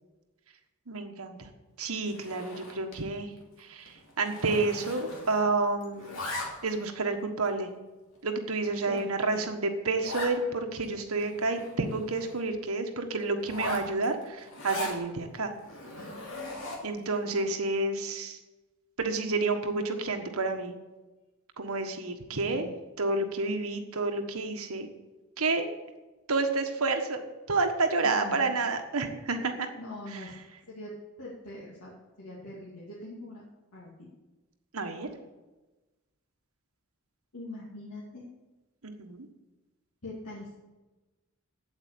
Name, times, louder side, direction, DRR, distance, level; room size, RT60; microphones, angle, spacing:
voice 1, 0.9-1.4 1.8-3.3 3.7-3.9 4.2-6.2 6.6-7.7 8.2-15.5 16.8-18.4 19.0-20.7 21.6-22.7 23.0-24.9 25.4-25.7 26.3-27.2 27.5-29.7 34.7-35.1 38.8-39.3, right 3 dB, 80° right, 5 dB, 1.5 m, -29 dB
Zipper (clothing), 2.0-3.1 3.4-3.6 3.9-5.5 5.8-6.8 7.4-7.5 8.1-8.2 8.6-8.7 9.0-9.1 9.3-9.4 10.0-10.4 10.8-10.9 11.1-12.4 13.4-15.0 15.6-17.0, left 2 dB, 70° left, 2.8 m, -39 dB
voice 2, 22.4-22.8 28.0-28.6 29.8-30.3 30.7-31.9 32.2-33.4 33.7-34.1 37.3-38.3 40.0-40.6, left 1 dB, 85° left, -6 dB, 2.6 m, -42 dB
8.3 x 8.1 x 8.5 m, 1.1 s
head